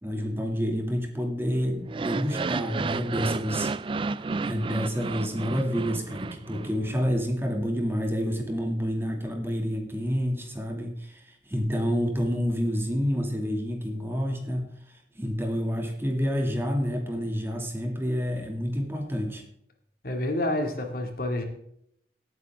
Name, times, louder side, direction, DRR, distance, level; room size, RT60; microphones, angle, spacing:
voice 1, 0.0-3.7 4.4-19.4, equal, 15° right, 3 dB, 2.3 m, -29 dB
sound 1, 1.9-7.0, right 4 dB, 30° right, 0.3 m, -32 dB
voice 2, 20.0-21.4, left 1 dB, 55° left, 4 dB, 2.3 m, -28 dB
17.0 x 9.3 x 3.6 m, 0.71 s
head